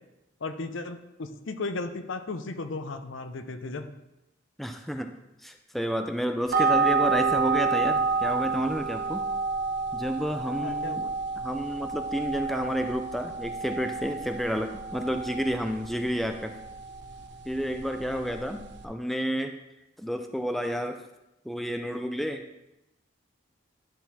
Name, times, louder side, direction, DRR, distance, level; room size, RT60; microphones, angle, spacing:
voice 1, 0.4-3.9 6.7-6.9 10.6-11.1 18.1-18.5, left 3 dB, 75° left, 8 dB, 0.6 m, -36 dB
voice 2, 4.6-5.1 5.4-9.3 9.9-11.1 11.4-16.6 17.5-19.5 20.0-21.0 21.4-22.4, equal, ahead, 5 dB, 0.3 m, -30 dB
sound 1, 6.5-18.8, right 4 dB, 55° right, 0.6 m, -30 dB
11.0 x 4.0 x 4.1 m, 0.93 s
head